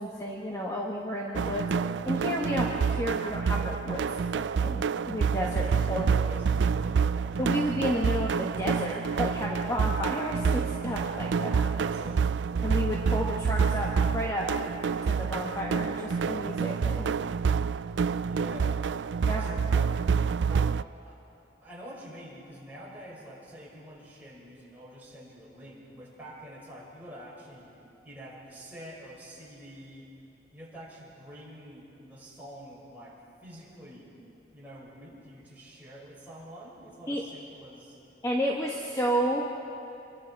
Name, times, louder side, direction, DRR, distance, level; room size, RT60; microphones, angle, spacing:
voice 1, 0.0-4.1 4.3-6.1 7.4-11.7 12.6-14.5 15.0-17.1 19.2-19.5 37.1-37.2 38.2-39.4, equal, 20° left, -3 dB, 1.5 m, -31 dB
sound 1, 1.4-20.8, right 6 dB, 90° right, 0.4 m, -28 dB
voice 2, 5.5-7.4 11.6-12.3 18.2-20.0 20.5-21.2 21.6-27.7 28.0-30.1 30.5-33.1 33.4-34.2 34.5-38.0, equal, 10° right, -7 dB, 6.3 m, -46 dB
27.5 x 23.5 x 4.8 m, 2.7 s
head